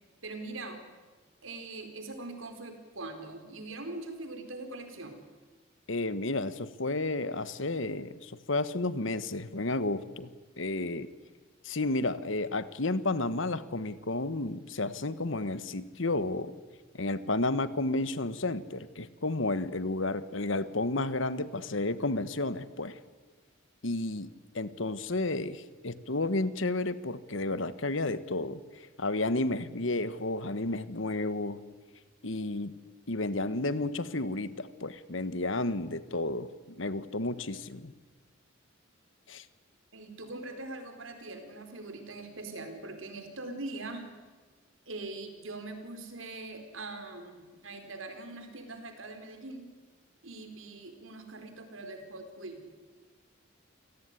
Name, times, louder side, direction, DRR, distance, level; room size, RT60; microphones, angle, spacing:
voice 1, 0.2-0.8 1.4-5.2 39.9-44.1 44.9-49.7 50.2-52.6, right 2 dB, 75° right, 6 dB, 4.5 m, -42 dB
voice 2, 5.9-10.3 10.6-11.1 11.6-16.5 16.9-23.0 23.8-28.6 29.0-31.6 32.2-32.7 33.1-37.9 39.3-39.4, left 2 dB, 70° left, 14 dB, 1.4 m, -32 dB
28.0 x 18.0 x 9.8 m, 1.4 s
head